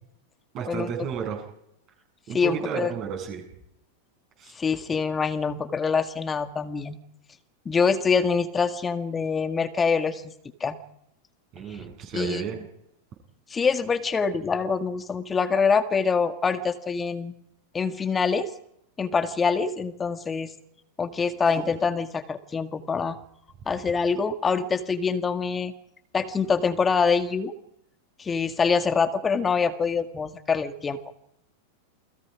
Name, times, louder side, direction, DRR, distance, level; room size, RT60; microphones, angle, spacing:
voice 1, 0.5-1.4 2.3-3.4 4.4-4.5 11.5-12.7, right 7 dB, 35° right, 2 dB, 7.8 m, -32 dB
voice 2, 2.3-2.9 4.5-7.0 7.7-10.3 10.6-10.8 12.1-12.4 13.5-17.3 17.7-18.5 19.0-20.5 21.0-23.2 23.7-25.7 26.1-27.5 28.2-31.0, left 5 dB, 15° left, 9 dB, 1.9 m, -25 dB
29.0 x 21.0 x 5.0 m, 0.78 s
figure-of-eight pair, 90°, 0 cm